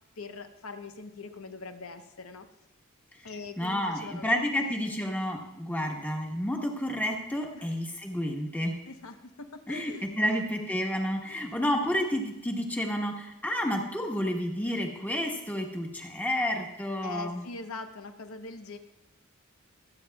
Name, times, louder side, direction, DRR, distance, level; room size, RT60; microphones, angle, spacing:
voice 1, 0.2-2.5 3.2-4.7 7.5-7.7 8.9-10.4 11.3-11.6 17.0-18.8, left 3 dB, 70° left, 7 dB, 0.9 m, -42 dB
voice 2, 3.6-8.7 9.7-17.4, equal, 10° left, 1 dB, 1.3 m, -30 dB
24.0 x 8.7 x 2.3 m, 0.91 s
head